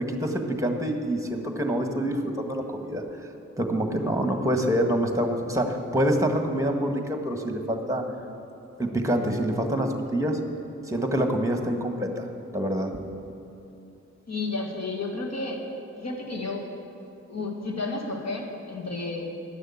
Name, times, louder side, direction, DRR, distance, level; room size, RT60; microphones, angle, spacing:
voice 1, 0.0-3.0 3.6-8.0 8.8-10.4 10.9-12.3 12.5-13.0, equal, 10° right, 4 dB, 1.4 m, -26 dB
voice 2, 14.3-15.6 16.0-16.7 17.3-19.3, left 3 dB, 60° left, 0 dB, 1.8 m, -32 dB
10.0 x 6.4 x 8.4 m, 2.8 s
cardioid pair, 50°, 30 cm